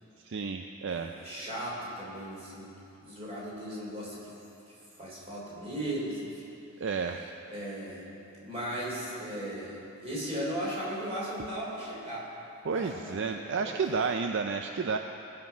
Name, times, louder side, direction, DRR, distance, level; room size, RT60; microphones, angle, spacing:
voice 1, 0.2-1.1 6.8-7.3 12.6-15.0, right 5 dB, 55° right, 5 dB, 0.4 m, -31 dB
voice 2, 0.9-2.7 3.0-4.3 4.7-6.4 7.5-8.1 8.4-12.3 12.7-14.0, right 1 dB, 25° right, -5 dB, 3.2 m, -37 dB
18.0 x 7.4 x 5.7 m, 3.0 s
head